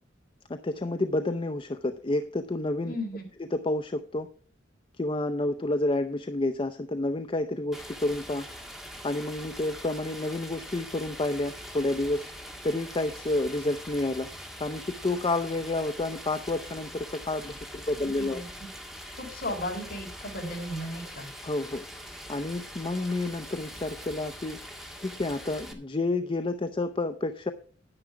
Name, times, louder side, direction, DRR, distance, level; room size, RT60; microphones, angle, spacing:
voice 1, 0.5-2.9 3.4-4.3 5.0-8.4 9.0-12.3 12.6-14.3 14.6-18.4 21.4-24.6 25.0-27.5, left 2 dB, 30° left, 9 dB, 0.6 m, -30 dB
voice 2, 2.9-3.3 18.2-18.7 19.2-21.3, equal, 55° left, 2 dB, 4.4 m, -35 dB
Stream, 7.7-25.7, equal, ahead, 1.8 m, -43 dB
10.5 x 9.9 x 4.7 m, 0.41 s
head